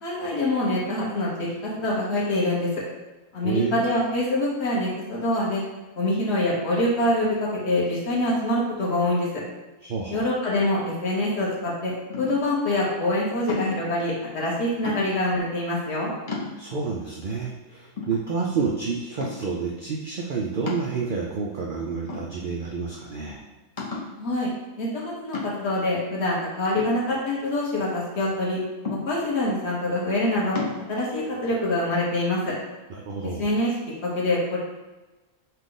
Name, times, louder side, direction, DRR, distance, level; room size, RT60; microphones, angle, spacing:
voice 1, 0.0-1.5 1.8-2.7 3.3-5.6 6.0-9.3 10.1-16.1 24.2-24.5 24.8-28.6 28.9-30.6 30.9-32.5 33.4-33.7 34.0-34.6, left 1 dB, 50° left, -5 dB, 1.4 m, -25 dB
voice 2, 3.4-3.8 9.8-10.2 16.6-23.4 32.9-33.5, right 5 dB, 75° right, -1 dB, 0.4 m, -29 dB
sound 1, 12.1-12.6 13.5-13.9 14.8-15.3 15.9-16.0 16.3-16.9 17.5-17.6 18.0-18.7 19.2-19.6 20.7-21.4 22.1-22.7 23.1-23.2 23.8-24.2 25.3-25.8 26.8-27.7 28.8-29.4 30.5-30.8, left 4 dB, 30° left, 0.7 m, -34 dB
5.6 x 2.5 x 3.8 m, 1.1 s
omnidirectional pair, 1.5 m